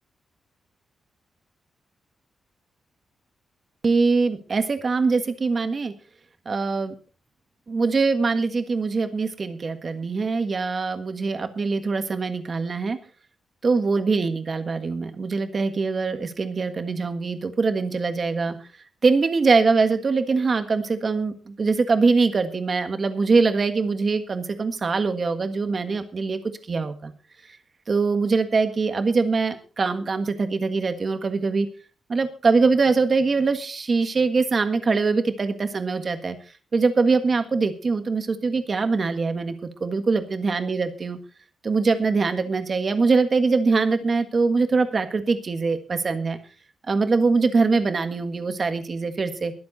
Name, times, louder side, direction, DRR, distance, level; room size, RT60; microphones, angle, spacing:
voice 1, 3.8-5.9 6.4-6.9 7.7-13.0 13.6-18.6 19.0-26.4 26.7-27.1 27.9-31.7 32.1-36.4 36.7-41.2 41.6-46.4 46.9-49.5, right 4 dB, 35° right, 8 dB, 1.6 m, -23 dB
22.0 x 7.7 x 4.2 m, 0.37 s
wide cardioid pair, 150°, 0 cm